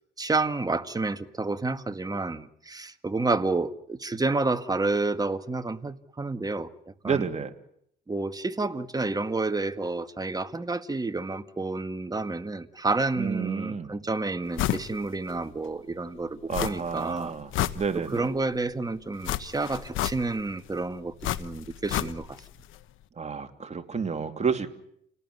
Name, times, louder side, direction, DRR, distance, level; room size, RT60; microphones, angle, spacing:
voice 1, 0.2-6.7 7.0-7.3 8.1-17.3 17.9-22.4, right 3 dB, 20° right, 9 dB, 1.8 m, -30 dB
voice 2, 7.0-7.5 13.2-13.9 16.5-17.5 17.7-18.3 23.2-24.7, right 6 dB, 35° right, 6 dB, 3.0 m, -30 dB
sound 1, 14.6-14.9 15.3-15.4 16.5-17.0 17.3-18.3 19.2-20.5 21.2-22.5 22.7-22.8, left 13 dB, 90° left, 1.1 m, -30 dB
29.5 x 19.0 x 9.7 m, 0.72 s
cardioid pair, 90°, 20 cm